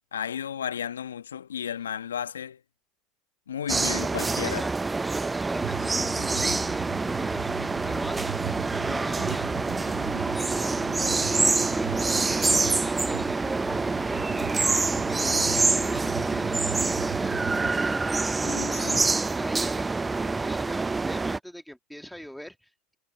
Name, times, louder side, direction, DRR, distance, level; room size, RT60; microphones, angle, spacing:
voice 1, 0.1-2.6 3.5-4.7 18.4-19.0, left 8 dB, 80° left, 1.3 m, -33 dB
sound 1, 3.7-21.4, right 3 dB, 15° right, 0.5 m, -26 dB
voice 2, 4.4-22.9, equal, ahead, 1.8 m, -41 dB
sound 2, 5.6-17.7, right 15 dB, 70° right, 0.7 m, -39 dB
figure-of-eight pair, 75°, 0 cm